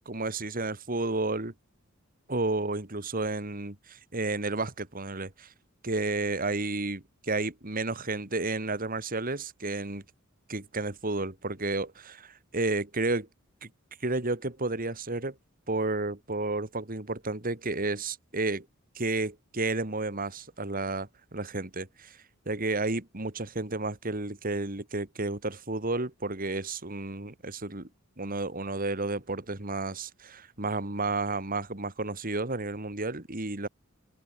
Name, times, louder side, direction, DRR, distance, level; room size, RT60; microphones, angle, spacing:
voice 1, 0.1-1.5 2.3-5.5 5.8-10.0 10.5-13.3 13.6-13.7 14.0-15.3 15.7-18.7 19.0-22.2 22.5-27.9 28.2-33.7, right 2 dB, 45° right, 2.6 m, -31 dB
head